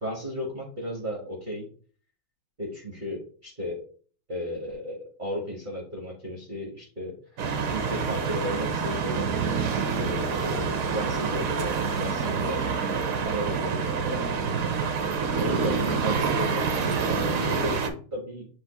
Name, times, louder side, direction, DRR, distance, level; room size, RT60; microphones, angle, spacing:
voice 1, 0.0-1.7 2.6-3.8 4.3-7.2 7.7-9.3 10.0-12.6 13.2-14.2 15.4-18.5, equal, 35° right, -2 dB, 0.8 m, -34 dB
sound 1, 7.4-17.9, right 5 dB, 80° right, 0.7 m, -27 dB
7.2 x 3.0 x 2.2 m, 0.42 s
omnidirectional pair, 2.3 m